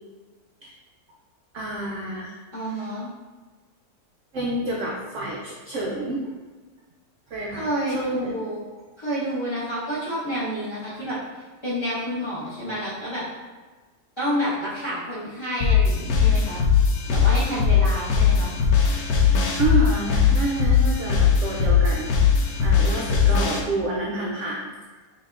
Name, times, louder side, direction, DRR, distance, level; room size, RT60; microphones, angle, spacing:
voice 1, 1.5-2.3 2.6-2.9 4.3-6.3 7.3-8.4 10.9-11.0 19.6-22.1 22.6-24.7, right 2 dB, 70° right, -3 dB, 0.7 m, -29 dB
voice 2, 2.5-3.1 7.5-8.7 9.0-11.2 11.6-13.2 14.2-16.6 17.1-18.5, equal, 20° left, -10 dB, 1.1 m, -29 dB
sound 1, 15.6-23.6, left 6 dB, 75° left, 1.1 m, -20 dB
5.4 x 2.9 x 2.4 m, 1.3 s
omnidirectional pair, 1.7 m